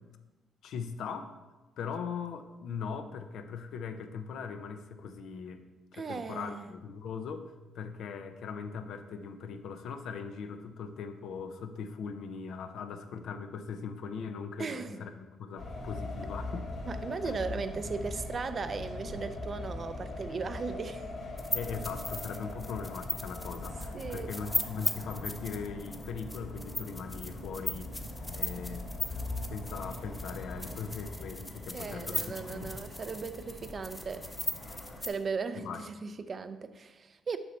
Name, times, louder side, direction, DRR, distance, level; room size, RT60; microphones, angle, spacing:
voice 1, 0.6-1.3 1.8-5.6 5.9-7.5 7.7-16.7 17.2-17.3 21.5-27.9 28.3-28.9 29.5-32.7 35.6-35.8, left 6 dB, 75° left, 8 dB, 0.6 m, -40 dB
voice 2, 5.9-6.7 14.6-15.0 16.8-21.1 23.9-24.3 31.7-34.3 35.0-37.4, right 4 dB, 40° right, 11 dB, 0.5 m, -37 dB
sound 1, 15.6-35.0, left 2 dB, 55° left, 2.4 m, -41 dB
sound 2, 21.4-35.1, left 1 dB, 10° left, 0.7 m, -37 dB
6.8 x 5.4 x 4.3 m, 1.2 s
cardioid pair, 90°, 0 cm